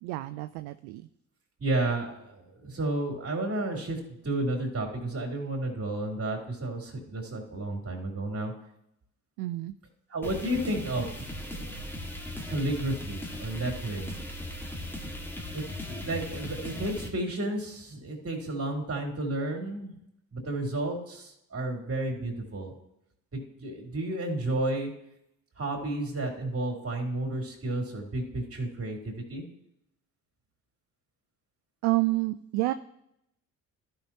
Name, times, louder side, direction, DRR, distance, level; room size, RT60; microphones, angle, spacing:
voice 1, 0.0-1.0 9.4-9.7 31.8-32.7, right 19 dB, 65° right, 11 dB, 0.5 m, -29 dB
voice 2, 1.6-8.5 10.1-11.1 11.4-11.8 12.3-14.1 15.5-19.9 20.3-22.7 23.3-24.9 25.6-29.4, right 2 dB, 35° right, 2 dB, 3.2 m, -32 dB
sound 1, 10.2-17.1, left 1 dB, 5° left, 1.9 m, -38 dB
15.0 x 5.7 x 2.9 m, 0.77 s
figure-of-eight pair, 45°, 41 cm